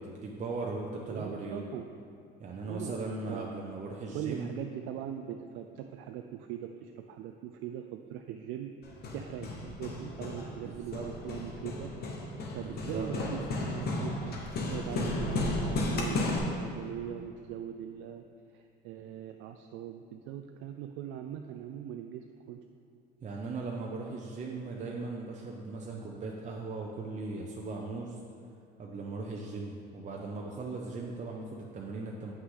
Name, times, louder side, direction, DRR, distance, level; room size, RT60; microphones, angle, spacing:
voice 1, 0.0-1.6 2.4-4.5 10.6-11.1 12.6-13.1 23.2-28.2 28.8-32.3, right 3 dB, 35° right, -1 dB, 0.7 m, -38 dB
voice 2, 1.1-1.9 2.7-3.5 4.1-8.7 9.1-12.2 12.5-14.4 14.7-16.2 16.5-18.2 18.5-22.6, right 10 dB, 70° right, 5 dB, 0.4 m, -41 dB
Hammer, 8.8-16.4, left 2 dB, 50° left, 1.2 m, -34 dB
7.9 x 5.8 x 3.8 m, 2.5 s
supercardioid pair, 90°, 21 cm